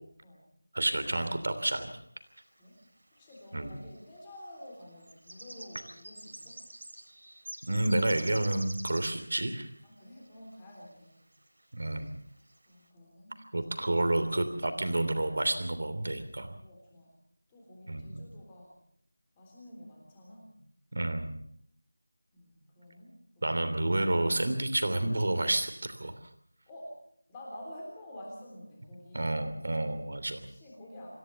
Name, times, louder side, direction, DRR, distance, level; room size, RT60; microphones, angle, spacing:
voice 1, 0.7-1.9 3.5-3.8 7.6-9.7 11.7-12.2 13.5-16.6 17.9-18.3 20.9-21.4 23.4-26.1 29.1-30.5, right 1 dB, 45° right, 9 dB, 3.1 m, -30 dB
sound 1, 2.8-2.9 3.2-3.8 4.6-9.3 10.2-10.3 10.8-10.9 11.3-11.6 12.0-12.1 12.4-12.7, right 1 dB, 70° right, 4.5 m, -46 dB
voice 2, 3.1-6.6 9.8-11.2 12.7-13.4 13.9-14.1 16.6-17.1 17.5-18.8 19.4-20.5 22.3-23.8 26.7-27.0 27.3-29.3 30.5-31.2, left 1 dB, 10° left, -2 dB, 3.5 m, -49 dB
27.0 x 15.5 x 6.9 m, 0.67 s
figure-of-eight pair, 180°, 0 cm